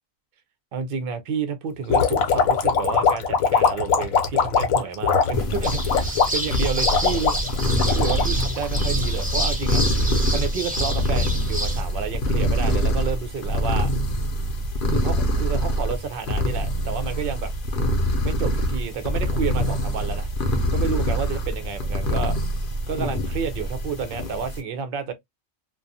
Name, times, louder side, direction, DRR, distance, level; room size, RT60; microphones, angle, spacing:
voice 1, 0.7-7.3 7.9-9.8 10.3-13.9 14.9-17.5 18.2-20.3 20.7-22.4 22.9-25.1, right 6 dB, 60° right, 0.6 m, -30 dB
sound 1, 1.9-9.2, left 6 dB, 80° left, 1.1 m, -21 dB
sound 2, 5.3-24.6, equal, 55° left, 0.6 m, -25 dB
sound 3, 5.6-11.8, equal, 10° right, 0.5 m, -29 dB
2.5 x 2.3 x 2.6 m
omnidirectional pair, 1.4 m